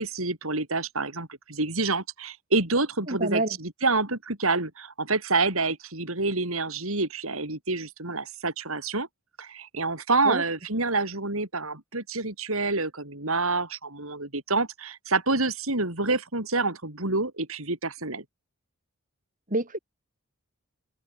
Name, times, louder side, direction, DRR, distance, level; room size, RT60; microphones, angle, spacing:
voice 1, 0.0-9.1 9.4-18.2, right 3 dB, 70° right, 5.3 m, -27 dB
voice 2, 3.1-3.6 10.3-10.4 19.5-19.8, right 2 dB, 35° right, 6.9 m, -27 dB
head